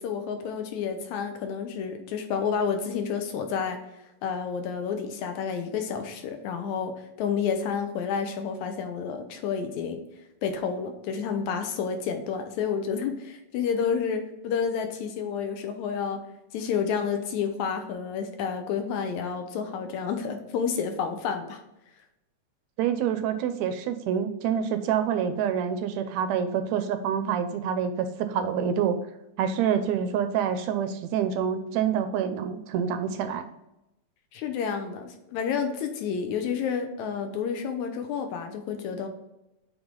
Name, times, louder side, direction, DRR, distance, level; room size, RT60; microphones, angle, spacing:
voice 1, 0.0-3.8 4.2-6.9 7.2-10.0 10.4-16.2 16.5-21.6 34.3-39.1, left 6 dB, 80° left, 6 dB, 2.2 m, -30 dB
voice 2, 22.8-29.0 29.4-33.5, right 8 dB, 80° right, 9 dB, 1.8 m, -27 dB
7.9 x 3.6 x 3.7 m, 0.89 s
omnidirectional pair, 3.3 m